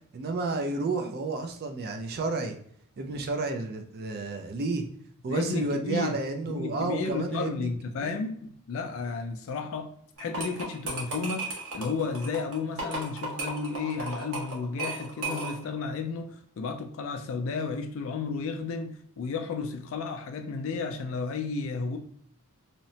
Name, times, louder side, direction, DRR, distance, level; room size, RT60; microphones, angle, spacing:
voice 1, 0.1-2.6 3.0-4.8 5.2-7.7 8.0-8.2, right 3 dB, 45° right, 0.4 m, -31 dB
voice 2, 5.3-6.1 6.5-9.9 10.2-22.0, left 4 dB, 65° left, 0.3 m, -33 dB
sound 1, 10.2-15.8, right 2 dB, 75° right, 0.9 m, -35 dB
2.8 x 2.0 x 2.6 m
head